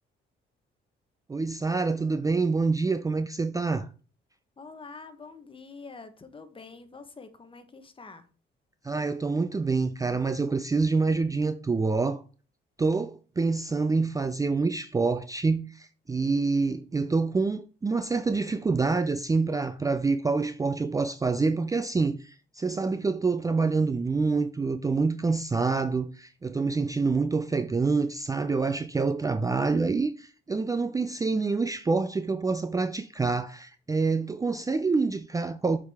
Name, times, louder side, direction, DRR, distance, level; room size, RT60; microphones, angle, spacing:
voice 1, 1.3-3.9 8.8-12.2 12.8-35.8, right 4 dB, 15° right, 0.4 m, -26 dB
voice 2, 4.6-8.3, left 4 dB, 25° left, 1.1 m, -46 dB
7.2 x 4.7 x 3.5 m
cardioid pair, 90°, 20 cm